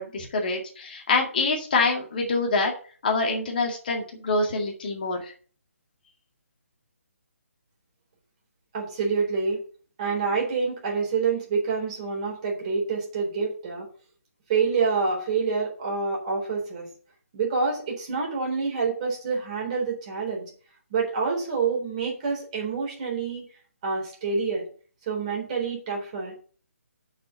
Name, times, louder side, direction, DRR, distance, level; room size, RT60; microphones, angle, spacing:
voice 1, 0.0-2.7 3.0-5.3, left 3 dB, 35° left, 1 dB, 2.0 m, -25 dB
voice 2, 8.7-9.6 10.0-13.9 14.5-16.9 17.3-20.5 20.9-23.5 23.8-24.7 25.1-26.4, right 5 dB, 30° right, -1 dB, 3.9 m, -27 dB
6.6 x 6.4 x 7.0 m, 0.42 s
figure-of-eight pair, 145°, 8 cm